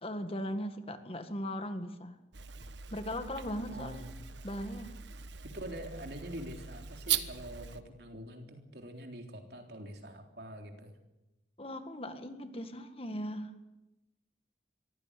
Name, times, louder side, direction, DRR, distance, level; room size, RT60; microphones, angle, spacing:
voice 1, 0.0-2.2 2.9-4.1 4.4-4.9 11.6-13.5, equal, 30° left, 8 dB, 1.8 m, -38 dB
sound 1, 2.3-7.8, right 9 dB, 75° right, 1.2 m, -39 dB
voice 2, 3.7-4.1 5.4-11.0, right 1 dB, 60° right, 4 dB, 3.6 m, -45 dB
23.5 x 15.0 x 9.9 m, 0.97 s
head